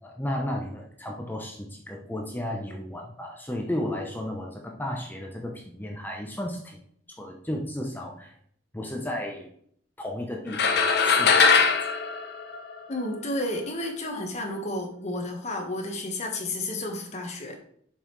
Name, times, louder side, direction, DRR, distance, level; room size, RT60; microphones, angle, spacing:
voice 1, 0.0-6.8 7.2-8.3 8.7-9.5 10.0-11.7, left 1 dB, 10° left, 1 dB, 0.7 m, -33 dB
sound 1, 10.5-13.1, left 5 dB, 60° left, 0.7 m, -21 dB
voice 2, 12.9-17.6, left 1 dB, 35° left, 2 dB, 1.3 m, -31 dB
7.3 x 5.4 x 3.2 m, 0.63 s
head